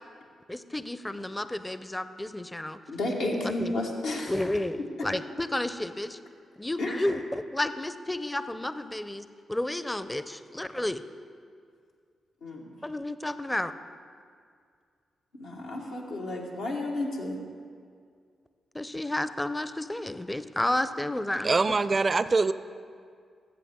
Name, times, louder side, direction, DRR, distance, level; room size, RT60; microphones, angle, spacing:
voice 1, 0.5-2.8 3.4-3.8 4.3-6.2 6.6-11.0 12.8-13.7 18.7-21.6, left 1 dB, 15° left, 12 dB, 0.5 m, -31 dB
voice 2, 2.9-4.3 6.8-7.1 12.4-12.7 15.4-17.4, left 2 dB, 85° left, -3 dB, 1.4 m, -32 dB
voice 3, 21.4-22.5, right 3 dB, 40° right, 14 dB, 0.4 m, -23 dB
13.5 x 7.9 x 3.6 m, 2.2 s
hypercardioid pair, 45°, 0 cm